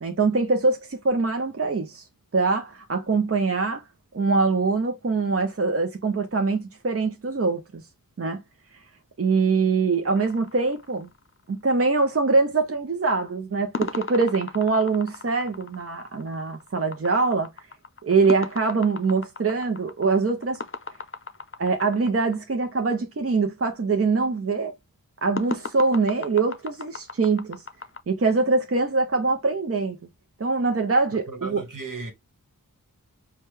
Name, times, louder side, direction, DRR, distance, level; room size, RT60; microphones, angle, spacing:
voice 1, 0.0-2.0 2.3-3.8 4.1-7.8 8.2-8.4 9.2-11.1 11.5-17.5 18.0-20.6 21.6-24.7 25.2-27.6 28.1-30.0 30.4-31.6, right 4 dB, 40° right, 0.6 m, -23 dB
sound 1, 10.2-11.5 13.7-22.4 25.4-28.0, left 4 dB, 40° left, 0.6 m, -36 dB
voice 2, 31.3-32.1, right 3 dB, 65° right, 1.3 m, -35 dB
4.9 x 2.2 x 3.2 m
wide cardioid pair, 60°, 34 cm